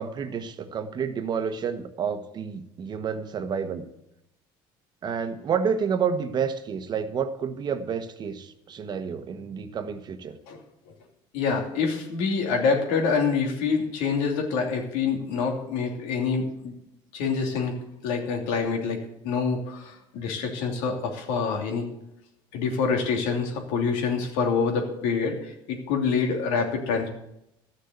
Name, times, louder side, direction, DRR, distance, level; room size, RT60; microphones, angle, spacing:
voice 1, 0.0-3.8 5.0-10.4, right 6 dB, 40° right, 10 dB, 1.2 m, -29 dB
voice 2, 11.3-16.7 17.1-17.7 18.0-21.9 22.5-27.1, left 5 dB, 85° left, 2 dB, 2.8 m, -26 dB
13.0 x 6.7 x 8.1 m, 0.82 s
cardioid pair, 110°, 11 cm